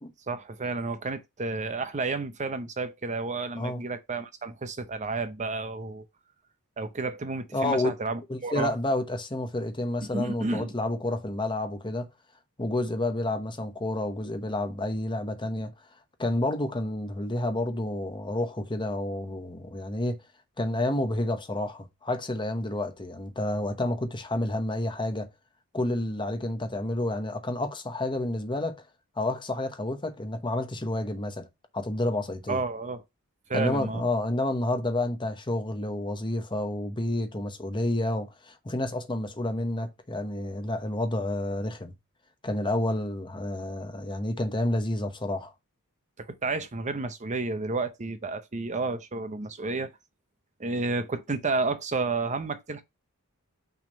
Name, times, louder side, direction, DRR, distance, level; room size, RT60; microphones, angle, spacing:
voice 1, 0.3-6.1 6.8-8.7 10.0-10.7 32.5-33.0 33.5-34.0 46.2-49.9 50.6-52.8, right 3 dB, 35° right, 0.7 m, -31 dB
voice 2, 7.5-7.9 8.3-12.1 12.6-15.7 16.2-20.2 20.6-25.3 25.7-28.8 29.2-31.5 31.7-32.6 33.5-41.9 42.4-45.5, left 1 dB, 20° left, 1.0 m, -29 dB
5.9 x 3.7 x 5.2 m
head